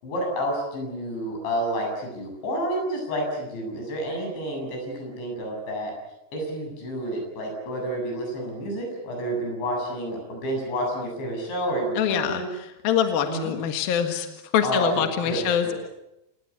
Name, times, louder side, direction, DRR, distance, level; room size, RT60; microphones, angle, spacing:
voice 1, 0.0-5.9 6.3-12.5 13.3-13.5 14.6-15.7, right 1 dB, 90° left, 2 dB, 10.0 m, -29 dB
voice 2, 12.0-12.4 12.8-14.3 14.5-15.7, left 8 dB, 65° left, 6 dB, 3.2 m, -24 dB
28.5 x 19.5 x 8.3 m, 0.89 s
omnidirectional pair, 5.0 m